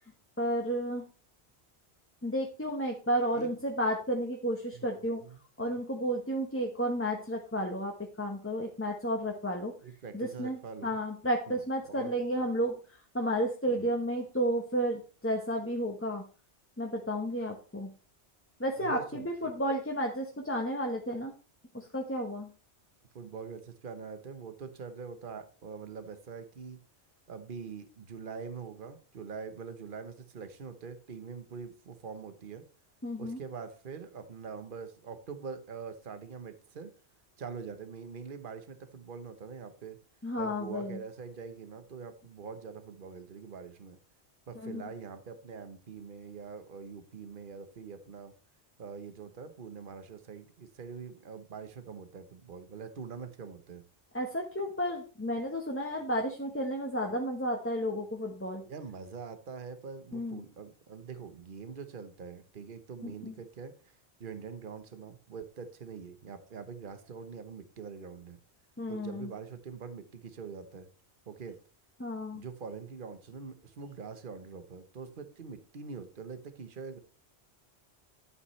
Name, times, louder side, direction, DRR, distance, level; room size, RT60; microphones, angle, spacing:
voice 1, 0.4-1.1 2.2-5.2 5.6-9.7 10.1-12.7 13.1-16.2 16.8-17.9 18.6-21.3 21.7-22.5 33.0-33.4 40.2-41.0 44.6-44.8 54.1-58.6 60.1-60.4 63.0-63.3 68.8-69.3 72.0-72.4, equal, 10° left, 1 dB, 1.1 m, -32 dB
voice 2, 4.7-5.8 9.8-11.0 11.5-11.6 11.9-12.1 13.7-13.9 18.8-19.5 23.1-26.8 27.3-32.6 33.2-36.9 37.4-40.0 40.4-44.0 44.5-48.3 48.8-53.8 58.6-68.4 68.9-70.9 71.3-71.6 72.3-77.0, right 5 dB, 50° right, 9 dB, 1.2 m, -44 dB
11.5 x 8.3 x 3.2 m, 0.37 s
omnidirectional pair, 1.1 m